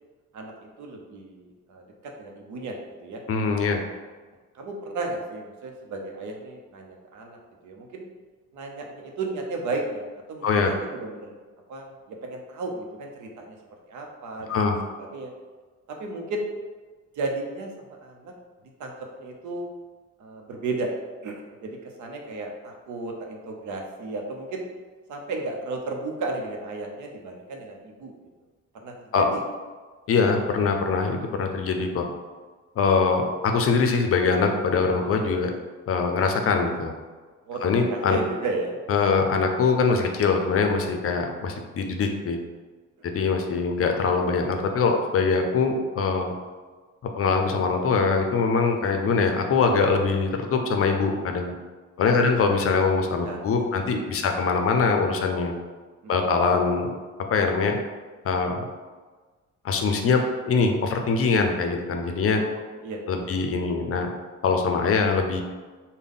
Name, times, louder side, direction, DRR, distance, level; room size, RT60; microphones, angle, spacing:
voice 1, 0.8-2.8 3.0-3.2 4.5-7.4 7.6-8.1 8.5-10.0 10.3-11.4 11.7-13.6 13.9-14.7 15.0-15.3 15.9-16.5 17.2-17.7 18.0-18.3 18.8-19.7 20.2-20.9 21.2-24.6 25.1-28.1 28.8-29.4 37.5-38.8 52.1-52.4 53.3-53.9 62.8-63.0, right 3 dB, 75° right, 1 dB, 0.7 m, -34 dB
voice 2, 3.3-3.8 10.4-10.7 14.5-14.8 29.1-29.2 30.1-32.1 32.8-35.5 35.9-36.9 37.6-38.2 38.9-42.4 43.1-46.3 47.2-51.5 52.0-55.5 56.1-56.9 57.3-57.8 58.2-58.6 59.6-62.4 63.1-64.1 64.4-65.4, left 4 dB, 50° left, 4 dB, 0.5 m, -23 dB
3.7 x 2.2 x 3.5 m, 1.4 s
cardioid pair, 90°, 30 cm